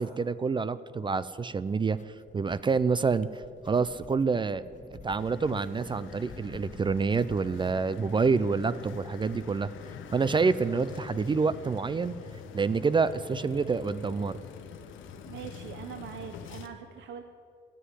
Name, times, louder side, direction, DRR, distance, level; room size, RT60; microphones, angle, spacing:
voice 1, 0.0-4.6 5.0-9.7 10.1-12.1 12.5-14.4, right 4 dB, 25° right, 16 dB, 0.4 m, -27 dB
sound 1, 1.7-7.8, left 7 dB, 40° left, 0.5 m, -53 dB
sound 2, 3.5-15.8, equal, 10° right, 1.5 m, -54 dB
sound 3, 5.2-16.7, left 7 dB, 80° left, 0.9 m, -45 dB
voice 2, 15.2-17.2, right 8 dB, 70° right, 7 dB, 0.7 m, -42 dB
10.0 x 7.9 x 9.6 m, 2.4 s
cardioid pair, 90°, 20 cm